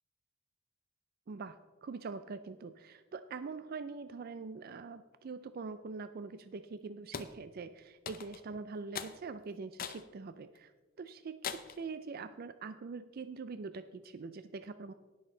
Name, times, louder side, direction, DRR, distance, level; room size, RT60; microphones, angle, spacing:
voice 1, 1.3-10.7 11.0-14.9, right 4 dB, 45° right, 11 dB, 0.4 m, -44 dB
sound 1, 7.1-7.3 8.1-8.5 8.9-9.2 9.8-10.1 10.6-10.7 11.4-11.8, left 7 dB, 45° left, 0.6 m, -41 dB
18.0 x 6.5 x 3.8 m, 1.3 s
head